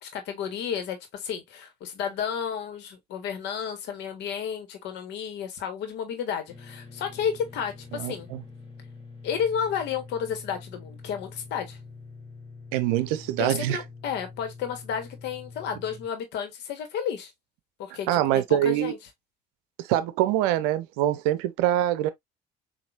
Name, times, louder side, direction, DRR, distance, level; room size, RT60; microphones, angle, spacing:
voice 1, 0.0-8.3 9.2-11.8 13.4-17.3 17.8-19.0, left 7 dB, 60° left, 1.6 m, -32 dB
sound 1, 6.5-16.1, left 4 dB, 25° left, 2.4 m, -45 dB
voice 2, 7.9-8.4 12.7-13.8 18.1-18.9 19.9-22.1, right 13 dB, 70° right, 0.6 m, -24 dB
7.0 x 2.8 x 2.6 m
hypercardioid pair, 55°, 20 cm